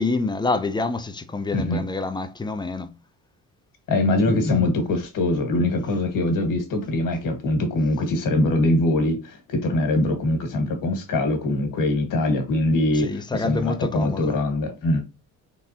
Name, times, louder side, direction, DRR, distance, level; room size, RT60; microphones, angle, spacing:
voice 1, 0.0-2.9 4.3-4.7 13.0-14.4, left 3 dB, 15° left, 0.5 m, -27 dB
voice 2, 1.5-1.8 3.9-15.0, left 2 dB, 70° left, 1.6 m, -23 dB
3.9 x 3.5 x 2.8 m
cardioid pair, 105°, 34 cm